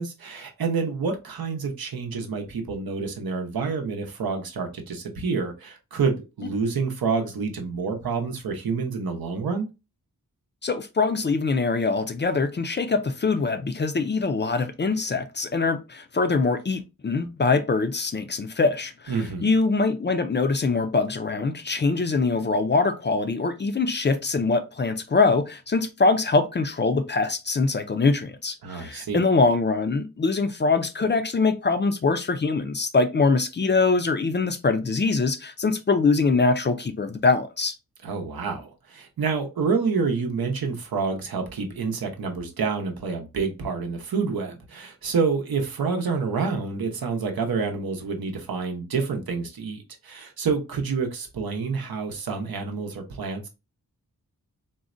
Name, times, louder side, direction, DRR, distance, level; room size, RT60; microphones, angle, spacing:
voice 1, 0.0-9.7 19.1-19.5 28.6-29.2 38.0-53.5, right 5 dB, 80° right, 0.7 m, -28 dB
voice 2, 10.6-37.7, left 4 dB, 30° left, 0.4 m, -23 dB
3.8 x 2.1 x 2.4 m
wide cardioid pair, 60°, 36 cm